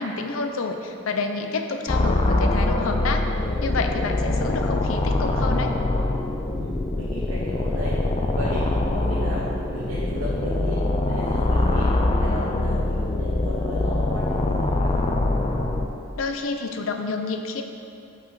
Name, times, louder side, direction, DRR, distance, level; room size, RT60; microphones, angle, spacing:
voice 1, 0.0-3.2 3.6-5.7 16.1-17.6, left 3 dB, 80° left, 5 dB, 0.6 m, -28 dB
sound 1, 1.9-15.9, left 2 dB, 25° left, 0.4 m, -23 dB
voice 2, 6.5-7.9 8.3-10.8 11.0-11.9 12.2-15.0, equal, 75° right, -7 dB, 0.9 m, -34 dB
5.6 x 5.4 x 4.8 m, 2.6 s
head